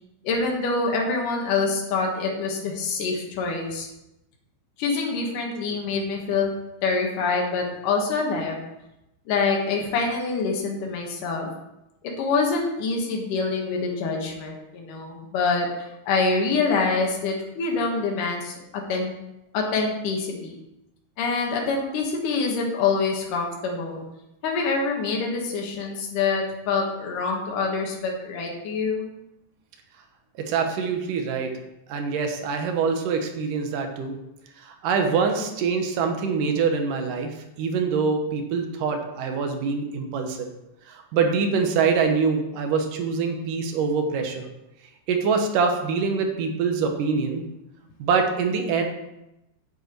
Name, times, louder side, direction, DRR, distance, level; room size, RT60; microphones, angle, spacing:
voice 1, 0.2-3.9 4.8-6.6 6.8-8.6 9.3-11.5 12.0-19.1 19.5-20.5 21.2-24.0 24.4-29.1, left 4 dB, 75° left, 0 dB, 3.2 m, -25 dB
voice 2, 30.4-31.5 31.9-34.2 34.6-40.5 40.9-44.5 45.1-47.4 48.0-48.8, right 5 dB, 75° right, 4 dB, 2.7 m, -24 dB
9.2 x 8.1 x 4.6 m, 0.89 s
omnidirectional pair, 3.8 m